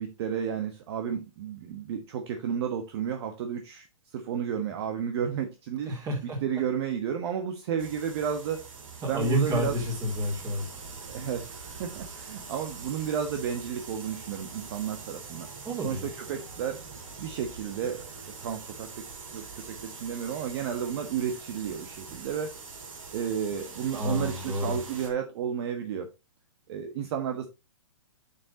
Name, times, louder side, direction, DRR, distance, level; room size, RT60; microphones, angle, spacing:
voice 1, 0.0-3.9 4.1-5.9 6.4-8.7 9.0-9.8 11.1-15.5 15.8-16.8 17.2-22.6 23.1-26.1 26.7-27.5, right 8 dB, 50° right, 1.2 m, -32 dB
voice 2, 5.9-6.4 9.0-10.7 15.6-16.1 23.9-24.8, equal, 20° right, 3.7 m, -29 dB
sound 1, 7.8-25.1, right 4 dB, 75° right, 3.0 m, -43 dB
8.8 x 6.9 x 2.9 m
hypercardioid pair, 135°, 17 cm